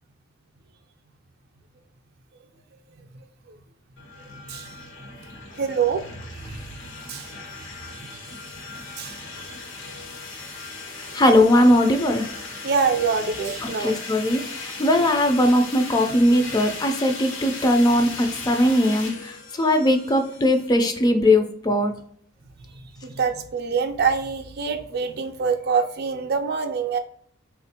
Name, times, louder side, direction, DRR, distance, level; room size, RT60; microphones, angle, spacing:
sound 1, 4.0-20.7, left 3 dB, 90° left, 0.9 m, -37 dB
voice 1, 4.2-4.7 5.6-6.0 6.3-6.7 7.1-7.3 7.9-8.2 9.0-9.6 12.6-13.9 23.0-27.0, right 5 dB, 55° right, 5 dB, 0.4 m, -25 dB
voice 2, 11.0-12.3 13.8-21.9, left 1 dB, 20° left, 5 dB, 0.3 m, -19 dB
3.6 x 2.5 x 2.7 m, 0.64 s
head